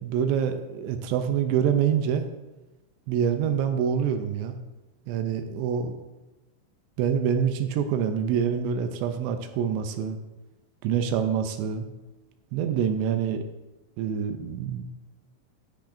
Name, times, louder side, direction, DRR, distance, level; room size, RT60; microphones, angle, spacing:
voice 1, 0.0-2.3 3.1-4.6 5.1-6.0 7.0-10.2 10.8-11.9 12.5-13.4 14.0-14.8, right 8 dB, 80° right, 7 dB, 2.6 m, -26 dB
10.0 x 8.7 x 2.6 m, 1.1 s
omnidirectional pair, 5.4 m